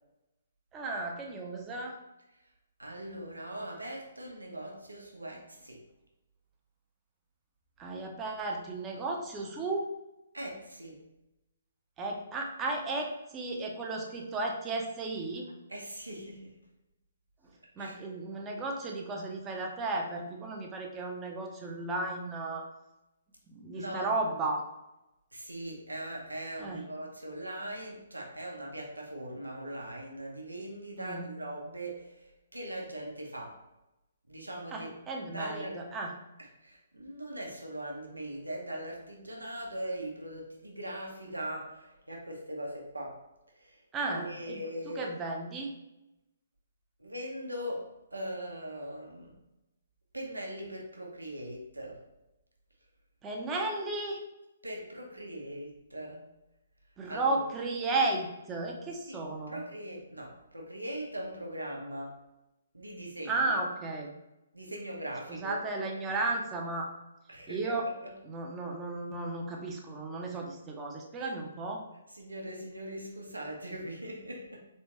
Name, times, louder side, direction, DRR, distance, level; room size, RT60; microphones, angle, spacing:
voice 1, 0.7-2.0 7.8-9.9 12.0-15.5 17.8-22.6 23.5-24.6 26.6-26.9 31.0-31.3 34.7-36.1 43.9-44.6 44.9-45.7 53.2-54.2 57.0-59.6 63.3-64.1 65.3-66.9 67.5-67.9 68.2-71.8, right 2 dB, 15° right, 1 dB, 0.7 m, -34 dB
voice 2, 2.8-5.8 10.3-11.0 15.7-16.6 17.8-17.9 23.7-24.4 25.3-33.6 34.3-34.9 35.3-35.8 36.6-43.2 43.5-43.8 44.1-45.1 47.0-49.4 50.1-52.0 54.6-56.2 57.1-57.4 59.1-62.2 62.7-63.6 64.5-65.6 67.3-68.1 71.2-71.3 72.1-74.6, right 1 dB, 85° right, -1 dB, 1.0 m, -40 dB
4.2 x 3.3 x 3.0 m, 0.94 s
figure-of-eight pair, 130°, 0 cm